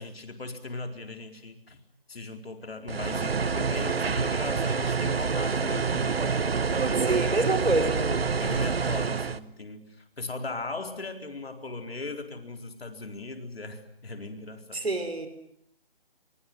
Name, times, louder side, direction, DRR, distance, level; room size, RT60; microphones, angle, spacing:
voice 1, 0.0-1.8 2.1-6.3 6.7-14.8, left 3 dB, 75° left, 6 dB, 4.4 m, -39 dB
sound 1, 2.9-9.4, right 5 dB, 75° right, 1.4 m, -27 dB
voice 2, 5.2-5.5 7.0-8.3 14.7-15.3, right 2 dB, 90° right, 9 dB, 5.6 m, -27 dB
28.5 x 22.5 x 7.8 m, 0.72 s
figure-of-eight pair, 160°, 30 cm